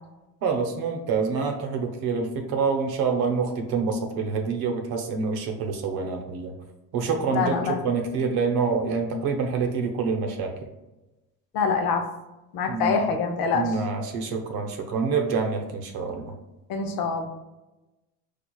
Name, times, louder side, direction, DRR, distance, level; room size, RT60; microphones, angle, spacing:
voice 1, 0.4-6.5 6.9-10.5 12.7-13.1 13.5-16.3, right 5 dB, 70° right, 4 dB, 0.7 m, -26 dB
voice 2, 7.3-7.8 11.5-12.0 12.5-13.7 16.7-17.3, left 5 dB, 65° left, 5 dB, 0.6 m, -25 dB
4.5 x 2.3 x 2.2 m, 1.0 s
supercardioid pair, 95°, 39 cm